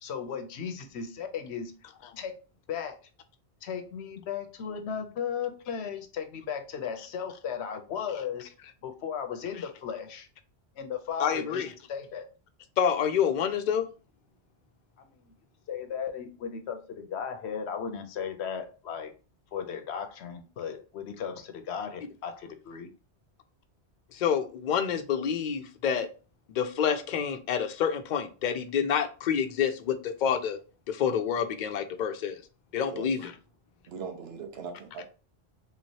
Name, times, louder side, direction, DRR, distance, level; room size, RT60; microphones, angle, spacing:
voice 1, 0.0-1.7 2.2-2.3 2.7-3.0 3.6-8.5 8.8-10.3 10.8-12.3 15.0-15.3 15.7-19.1 19.5-22.9, left 7 dB, 85° left, 0.9 m, -36 dB
voice 2, 11.2-11.7 12.8-13.9 24.1-26.1 26.5-30.6 30.9-32.4 32.7-33.3, left 8 dB, 55° left, 0.6 m, -28 dB
voice 3, 33.9-35.0, right 6 dB, 75° right, 0.9 m, -39 dB
3.5 x 3.0 x 2.7 m
omnidirectional pair, 1.1 m